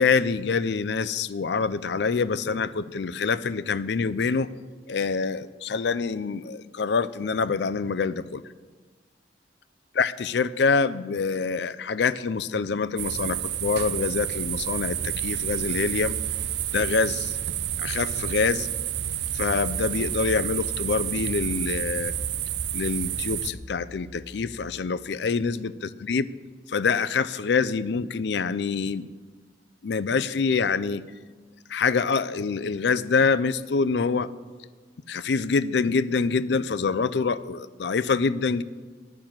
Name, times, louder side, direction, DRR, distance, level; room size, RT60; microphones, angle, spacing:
voice 1, 0.0-4.5 4.9-8.4 10.0-16.2 16.7-17.4 17.8-18.7 19.3-22.1 22.7-26.3 26.7-29.1 29.8-31.0 31.7-34.3 35.1-38.6, left 5 dB, 65° left, 16 dB, 0.4 m, -25 dB
sound 1, 13.0-23.5, right 11 dB, 65° right, 0.5 m, -30 dB
Piano, 19.0-24.6, left 2 dB, 35° left, 1.3 m, -43 dB
12.0 x 6.1 x 8.7 m, 1.4 s
head